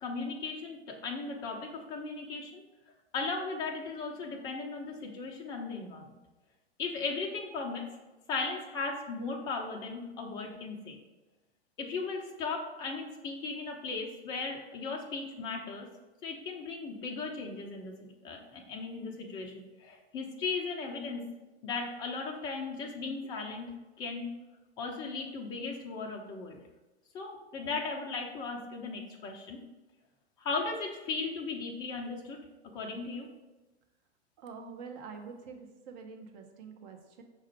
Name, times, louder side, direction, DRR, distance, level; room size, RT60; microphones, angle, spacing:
voice 1, 0.0-2.6 3.1-6.2 6.8-7.8 8.3-11.0 11.8-15.9 16.2-18.0 18.2-21.2 21.6-23.7 24.0-24.3 24.8-26.6 27.1-29.6 30.4-32.4 32.7-33.3, left 4 dB, 15° left, 2 dB, 0.3 m, -37 dB
voice 2, 34.4-37.2, right 5 dB, 40° right, 4 dB, 0.7 m, -46 dB
5.3 x 2.4 x 4.1 m, 1.1 s
figure-of-eight pair, 100°, 34 cm